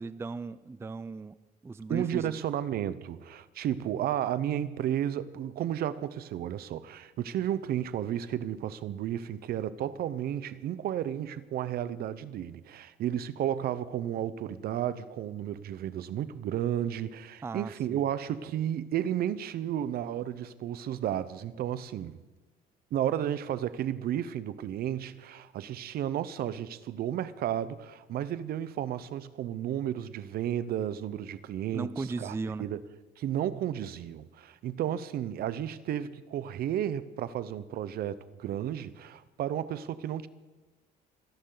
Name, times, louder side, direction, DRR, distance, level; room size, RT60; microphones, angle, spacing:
voice 1, 0.0-1.3 1.6-2.3 17.4-18.0 31.7-32.7, right 4 dB, 15° right, 0.4 m, -36 dB
voice 2, 1.9-22.2 22.9-32.3 32.6-32.8 33.2-40.3, right 10 dB, 65° right, 0.8 m, -33 dB
26.0 x 11.0 x 4.0 m
cardioid pair, 110°, 17 cm